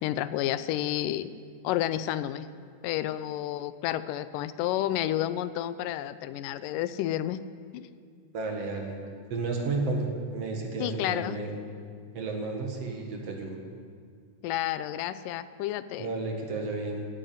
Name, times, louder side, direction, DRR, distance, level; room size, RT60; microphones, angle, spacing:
voice 1, 0.0-1.3 1.6-2.5 2.8-7.4 7.7-7.9 10.8-11.4 14.4-16.1, left 13 dB, 85° left, 14 dB, 2.2 m, -30 dB
voice 2, 8.3-8.9 9.3-11.6 12.1-13.6 16.0-17.1, right 3 dB, 55° right, 2 dB, 2.5 m, -32 dB
15.5 x 9.9 x 9.4 m, 2.1 s
omnidirectional pair, 3.8 m